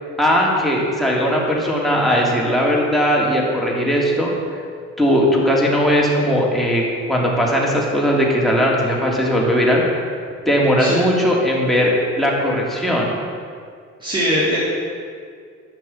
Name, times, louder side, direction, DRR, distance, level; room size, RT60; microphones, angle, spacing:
voice 1, 0.2-4.3 5.0-9.8 10.5-13.1, equal, ahead, -4 dB, 3.3 m, -18 dB
voice 2, 14.0-14.6, equal, 15° right, -9 dB, 3.8 m, -20 dB
11.5 x 6.8 x 8.8 m, 2.2 s
cardioid pair, 90°, 30 cm